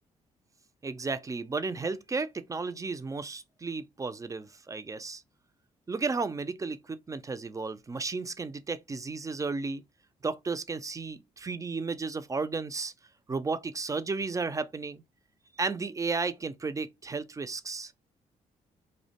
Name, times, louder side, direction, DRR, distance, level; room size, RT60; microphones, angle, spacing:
voice 1, 0.8-5.2 5.9-9.8 10.2-12.9 13.3-15.0 15.5-17.9, right 4 dB, 20° right, 0.3 m, -33 dB
2.4 x 2.1 x 2.7 m
supercardioid pair, 50°, 16 cm